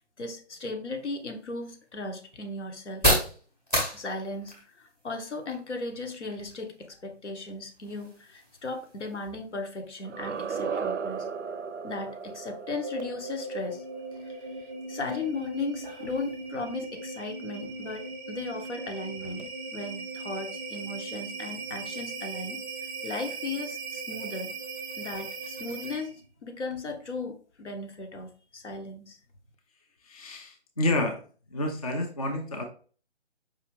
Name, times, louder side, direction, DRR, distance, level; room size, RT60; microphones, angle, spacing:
voice 1, 0.2-3.1 3.9-11.3 11.8-13.8 14.2-14.4 14.9-24.5 25.0-29.2, left 3 dB, 70° left, 4 dB, 1.1 m, -36 dB
sound 1, 0.9-18.5, equal, 10° left, 0.8 m, -37 dB
sound 2, 10.0-14.9, right 6 dB, 90° right, 0.5 m, -36 dB
sound 3, 12.3-26.2, right 3 dB, 30° right, 0.5 m, -39 dB
voice 2, 30.0-31.2 31.5-32.6, left 1 dB, 35° left, 2 dB, 0.4 m, -29 dB
4.9 x 2.8 x 3.0 m, 0.40 s
figure-of-eight pair, 150°, 35 cm